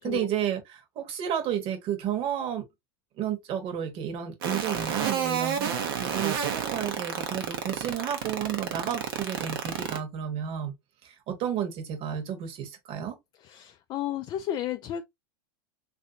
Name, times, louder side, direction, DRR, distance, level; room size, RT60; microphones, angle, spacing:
voice 1, 0.0-2.6 3.2-10.7 11.0-13.1, right 9 dB, 45° right, 1.1 m, -32 dB
sound 1, 4.4-10.0, right 8 dB, 65° right, 0.8 m, -29 dB
voice 2, 13.4-15.0, left 11 dB, 35° left, 0.3 m, -33 dB
3.3 x 2.7 x 2.6 m
hypercardioid pair, 100°, 12 cm